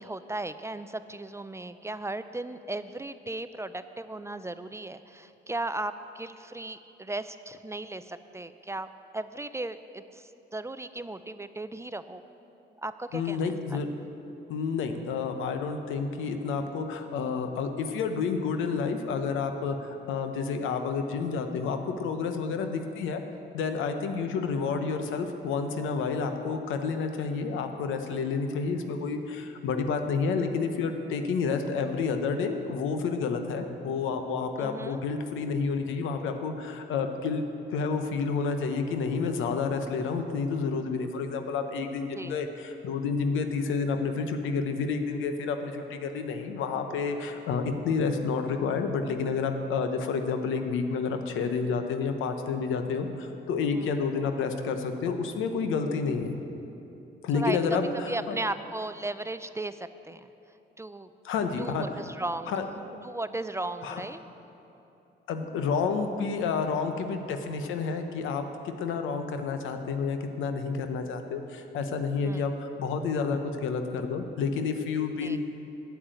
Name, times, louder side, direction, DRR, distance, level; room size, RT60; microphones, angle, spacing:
voice 1, 0.0-12.2 12.8-13.8 24.1-24.2 34.6-35.0 42.1-42.4 53.7-54.0 57.3-57.8 58.1-60.3 60.8-61.1 61.6-62.5 63.0-64.2 72.2-72.5 75.2-75.4, right 2 dB, 15° right, 12 dB, 0.3 m, -36 dB
voice 2, 13.1-13.9 14.5-23.2 23.5-37.4 37.7-56.4 57.2-58.4 61.2-61.8 62.5-62.6 63.8-64.0 65.3-75.4, left 5 dB, 90° left, 7 dB, 0.9 m, -30 dB
8.9 x 7.2 x 8.9 m, 2.9 s
cardioid pair, 90°, 20 cm